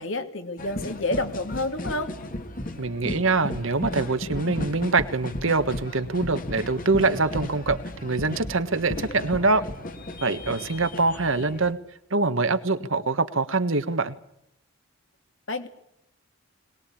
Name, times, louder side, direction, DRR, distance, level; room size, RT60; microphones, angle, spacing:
voice 1, 0.0-2.1 15.5-15.7, left 2 dB, 60° left, 7 dB, 2.5 m, -29 dB
sound 1, 0.6-11.7, left 1 dB, 40° left, 2.0 m, -35 dB
voice 2, 2.8-9.6 10.2-11.8 12.1-14.2, right 3 dB, 65° right, 10 dB, 1.5 m, -24 dB
22.0 x 20.0 x 8.6 m, 0.78 s
head